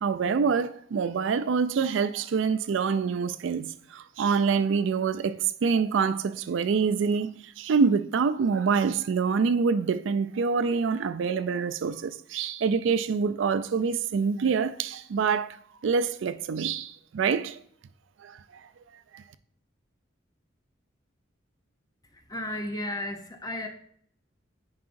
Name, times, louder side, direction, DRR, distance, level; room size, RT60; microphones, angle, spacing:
voice 1, 0.0-17.6 18.2-18.4 19.1-19.2, right 5 dB, 70° right, 0.4 m, -26 dB
voice 2, 22.1-23.7, left 1 dB, 20° left, 0.6 m, -34 dB
9.4 x 4.8 x 2.6 m
head